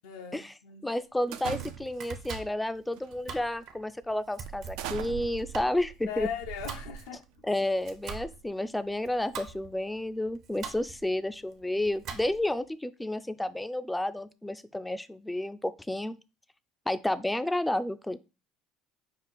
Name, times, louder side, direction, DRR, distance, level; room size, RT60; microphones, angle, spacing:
voice 1, 0.0-0.8 6.1-7.4, left 8 dB, 85° left, 0.5 m, -39 dB
voice 2, 0.8-6.3 7.4-16.2 16.9-18.2, left 1 dB, 5° left, 0.3 m, -31 dB
Domestic sounds home sounds, 1.2-12.6, right 6 dB, 60° right, 0.9 m, -45 dB
sound 1, 1.3-2.1 2.9-3.2 3.7-3.8 4.5-7.4, right 11 dB, 80° right, 0.4 m, -40 dB
5.4 x 2.4 x 4.1 m
supercardioid pair, 95°, 0 cm